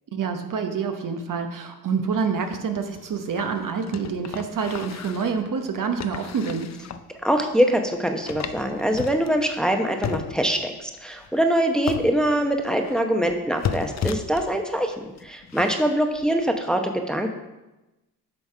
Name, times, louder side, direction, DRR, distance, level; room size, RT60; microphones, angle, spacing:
voice 1, 0.1-6.7, right 5 dB, 50° right, 6 dB, 1.0 m, -27 dB
sound 1, 2.4-5.4 6.0-7.1 7.5-7.6 7.9-8.0 8.3-9.8 10.0-10.7 11.2-11.4 11.8-13.0 13.3-14.7 15.2-15.7 16.2-16.3, left 7 dB, 40° left, 0.6 m, -34 dB
voice 2, 7.2-14.9 15.2-17.3, right 1 dB, ahead, 4 dB, 0.9 m, -23 dB
8.4 x 3.5 x 5.5 m, 1.0 s
supercardioid pair, 55°, 40 cm